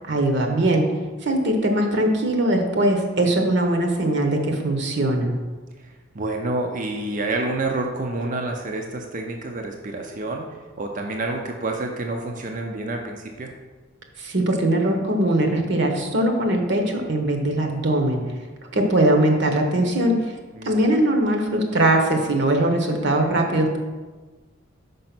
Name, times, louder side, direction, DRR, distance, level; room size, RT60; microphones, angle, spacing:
voice 1, 0.1-0.9 1.2-5.3 14.2-18.2 18.7-20.2 20.6-23.8, right 1 dB, 60° right, 3 dB, 1.0 m, -21 dB
voice 2, 6.1-10.5 10.8-13.5 20.5-20.9, right 2 dB, 40° right, 2 dB, 0.5 m, -28 dB
5.3 x 4.8 x 5.9 m, 1.3 s
head